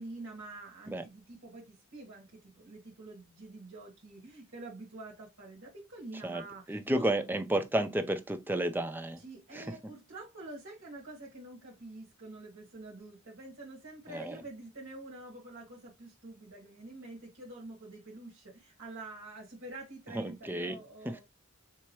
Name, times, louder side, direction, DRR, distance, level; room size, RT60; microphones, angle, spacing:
voice 1, 0.0-7.1 9.2-21.2, right 2 dB, 60° right, 1.4 m, -47 dB
voice 2, 6.7-9.2 9.5-9.7 14.1-14.4 20.1-20.8 21.1-21.2, right 1 dB, 10° right, 0.5 m, -32 dB
4.5 x 2.9 x 3.0 m
head